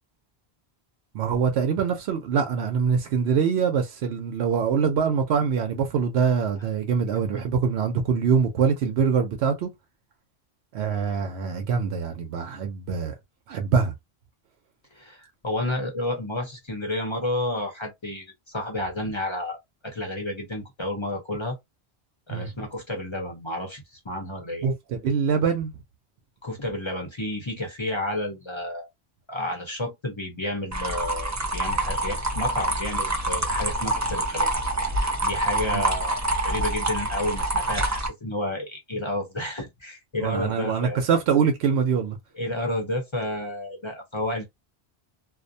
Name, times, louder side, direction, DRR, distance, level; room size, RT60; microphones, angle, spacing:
voice 1, 1.1-9.7 10.7-13.1 13.5-13.9 22.3-22.5 24.6-25.7 35.7-35.8 40.2-42.2, right 6 dB, 85° right, 0.8 m, -24 dB
voice 2, 14.9-19.6 19.8-21.6 22.3-24.6 26.4-28.9 29.3-34.5 35.2-41.0 42.3-44.4, left 1 dB, 30° left, 0.7 m, -31 dB
sound 1, 30.7-38.1, right 1 dB, 25° right, 0.4 m, -26 dB
2.4 x 2.1 x 2.6 m
omnidirectional pair, 1.1 m